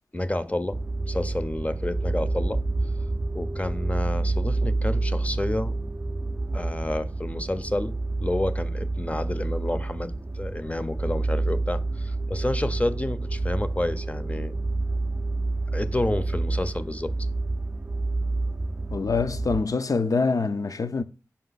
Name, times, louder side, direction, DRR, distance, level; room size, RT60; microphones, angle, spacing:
voice 1, 0.1-0.8 1.1-2.6 3.3-5.7 6.5-14.5 15.7-17.1, left 1 dB, 20° left, 0.5 m, -29 dB
sound 1, 0.7-19.6, right 2 dB, 25° right, 0.4 m, -28 dB
voice 2, 18.9-21.0, left 4 dB, 70° left, 0.5 m, -25 dB
5.6 x 5.3 x 4.0 m
wide cardioid pair, 60°, 6 cm